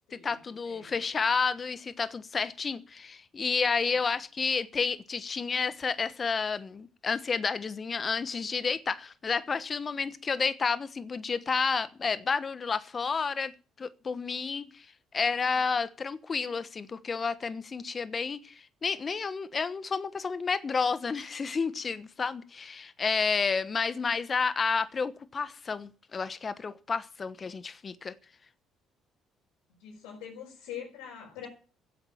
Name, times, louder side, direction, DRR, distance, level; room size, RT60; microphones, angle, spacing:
voice 1, 0.1-13.5 13.8-14.9 15.1-28.1, left 5 dB, 40° left, 1.2 m, -30 dB
voice 2, 29.8-31.5, left 8 dB, 80° left, 5.9 m, -43 dB
15.5 x 8.3 x 8.7 m
hypercardioid pair, 60°, 0 cm